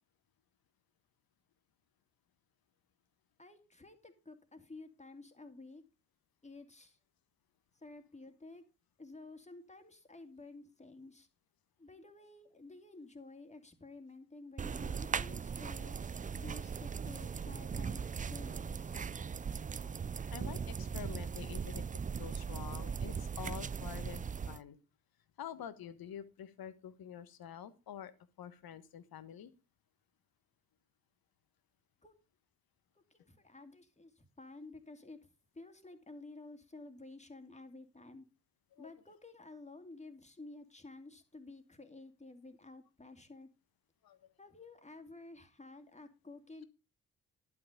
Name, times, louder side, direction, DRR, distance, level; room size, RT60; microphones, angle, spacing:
voice 1, 3.4-5.8 6.4-7.0 7.7-8.6 9.0-11.3 11.8-19.0 32.0-32.1 33.1-38.3 38.8-43.5 44.4-46.7, left 2 dB, 15° left, 6 dB, 2.6 m, -52 dB
sound 1, 14.6-24.6, right 6 dB, 20° right, 0.5 m, -39 dB
voice 2, 20.3-21.9 22.2-24.8 25.4-28.1 28.4-29.5 38.8-38.9 44.0-44.2, left 9 dB, 60° left, 13 dB, 1.3 m, -47 dB
11.0 x 8.3 x 5.1 m, 0.30 s
hypercardioid pair, 40°, 41 cm